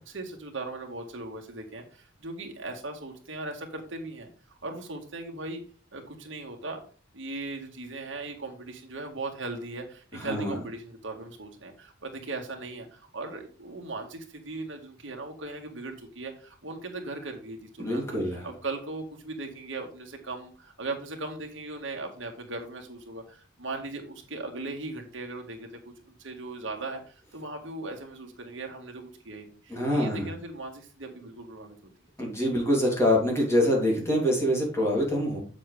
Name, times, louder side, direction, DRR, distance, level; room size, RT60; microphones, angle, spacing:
voice 1, 0.1-4.3 4.6-5.6 5.9-6.8 7.1-18.0 18.4-31.8, right 2 dB, 65° right, 2 dB, 2.0 m, -38 dB
voice 2, 10.1-10.6 17.8-18.5 29.7-30.3 32.2-35.4, equal, 15° left, -2 dB, 3.2 m, -25 dB
7.9 x 7.4 x 3.5 m, 0.40 s
head